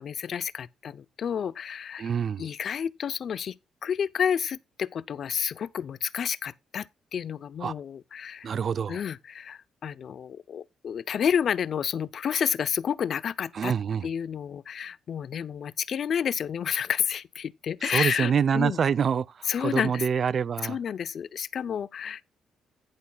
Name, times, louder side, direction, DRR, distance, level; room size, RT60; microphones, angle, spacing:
voice 1, 0.0-2.1 2.4-3.6 3.8-8.5 8.9-13.7 14.0-18.8 19.5-20.0 20.6-22.3, left 8 dB, 55° left, 0.5 m, -30 dB
voice 2, 2.0-2.4 7.6-7.7 8.4-9.0 13.5-14.1 17.8-20.8, right 7 dB, 50° right, 0.5 m, -26 dB
11.0 x 10.5 x 2.3 m
cardioid pair, 90°, 0 cm